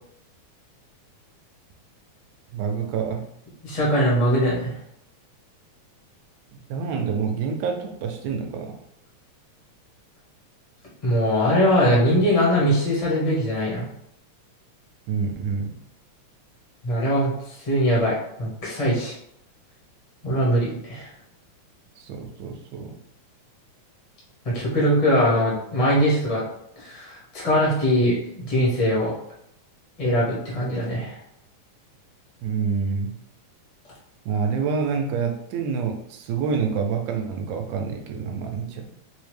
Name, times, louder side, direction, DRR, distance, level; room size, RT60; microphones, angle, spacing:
voice 1, 2.5-3.2 6.7-8.7 15.1-15.7 22.0-22.9 32.4-33.1 34.3-38.9, right 6 dB, 85° right, 4 dB, 1.9 m, -27 dB
voice 2, 3.6-4.7 11.0-13.9 16.8-17.3 17.6-19.1 20.2-21.1 24.4-26.4 26.8-29.1 30.0-31.1, equal, 55° left, -6 dB, 0.3 m, -21 dB
5.3 x 2.1 x 3.2 m, 0.73 s
omnidirectional pair, 3.4 m